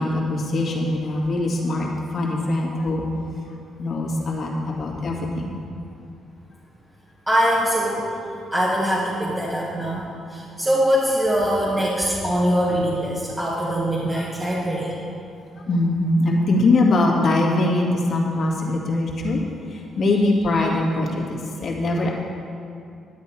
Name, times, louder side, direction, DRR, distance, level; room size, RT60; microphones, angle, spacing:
voice 1, 0.0-3.0 3.8-5.6 14.1-14.2 15.7-19.4 20.0-22.1, left 2 dB, 50° left, -2 dB, 2.1 m, -22 dB
voice 2, 7.3-8.1 8.5-10.0 10.3-15.0 20.6-20.7, equal, 10° right, -5 dB, 1.5 m, -22 dB
10.5 x 9.6 x 4.6 m, 2.5 s
cardioid pair, 90°, 0 cm